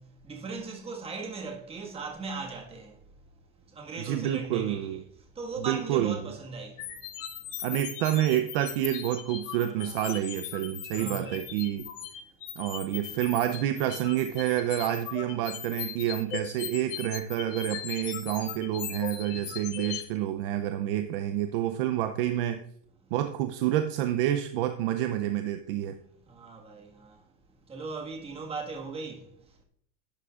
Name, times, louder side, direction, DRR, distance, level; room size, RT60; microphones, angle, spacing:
voice 1, 0.0-3.0 3.7-5.0 5.3-7.1 7.4-7.5 9.5-10.1 10.9-11.5 19.3-19.7 23.0-23.1 26.3-27.3 27.7-29.6, right 4 dB, 15° right, 1.6 m, -39 dB
voice 2, 4.0-5.0 5.6-6.2 7.6-11.9 12.6-22.6 23.1-26.0, right 12 dB, 45° right, 0.6 m, -28 dB
sound 1, 6.8-20.0, left 9 dB, 65° left, 1.9 m, -39 dB
11.5 x 9.5 x 2.4 m
supercardioid pair, 150°, 39 cm